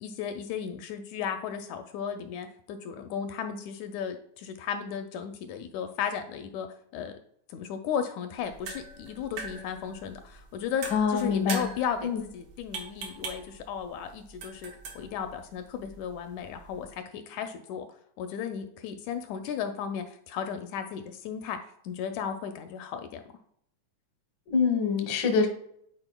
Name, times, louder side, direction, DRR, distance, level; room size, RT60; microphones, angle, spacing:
voice 1, 0.0-6.7 6.9-7.1 7.5-17.9 18.2-21.6 21.8-23.2, left 8 dB, 80° left, 7 dB, 1.8 m, -35 dB
sound 1, 8.4-17.0, right 5 dB, 70° right, 1.4 m, -43 dB
voice 2, 10.9-11.7 12.0-12.2 24.5-25.5, left 5 dB, 65° left, 4 dB, 1.1 m, -25 dB
9.7 x 4.4 x 2.2 m, 0.67 s
omnidirectional pair, 3.5 m